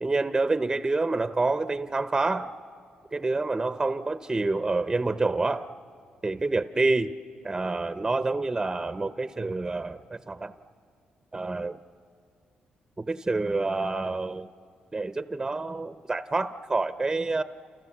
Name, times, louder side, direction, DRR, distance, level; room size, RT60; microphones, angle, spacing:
voice 1, 0.0-2.5 3.1-5.7 6.2-7.1 7.4-10.5 11.3-11.8 13.0-14.5 14.9-17.4, right 3 dB, 20° right, 11 dB, 0.6 m, -27 dB
29.5 x 28.0 x 7.3 m, 2.2 s
cardioid pair, 100°, 3 cm